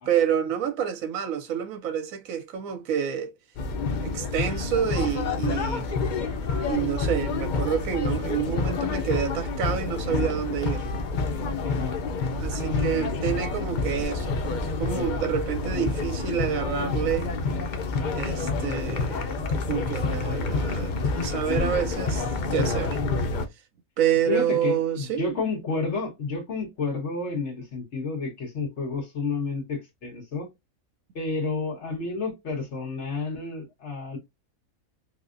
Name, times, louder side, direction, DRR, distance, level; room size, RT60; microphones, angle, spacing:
voice 1, 0.1-3.3 4.0-5.9 6.6-10.9 12.4-17.3 18.1-23.0 24.0-25.3, right 9 dB, 75° right, 1.0 m, -28 dB
sound 1, 3.6-23.5, left 3 dB, 80° left, 0.4 m, -28 dB
voice 2, 11.6-12.0 12.5-13.2 24.3-30.5 31.1-34.2, left 4 dB, 55° left, 1.5 m, -30 dB
4.7 x 2.1 x 2.5 m
omnidirectional pair, 1.5 m